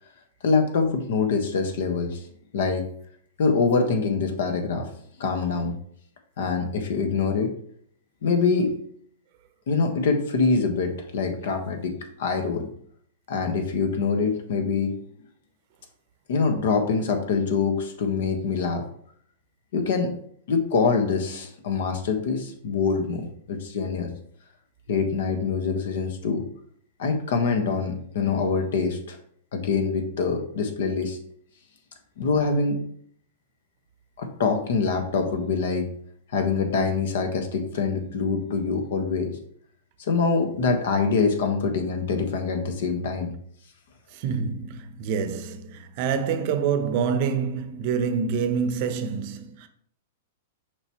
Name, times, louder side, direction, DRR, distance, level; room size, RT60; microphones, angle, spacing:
voice 1, 0.4-2.2 2.5-2.9 3.4-4.9 5.2-5.7 6.4-7.5 8.2-8.8 9.7-12.7 13.3-14.9 16.3-18.9 19.7-20.2 20.5-24.1 24.9-26.4 27.0-29.2 29.5-31.2 32.2-32.8 34.2-35.9 36.3-39.4 40.0-43.3, left 4 dB, 70° left, 1.4 m, -24 dB
voice 2, 44.1-49.7, right 6 dB, 45° right, 0.8 m, -26 dB
6.6 x 4.9 x 3.0 m
hypercardioid pair, 140°, 0 cm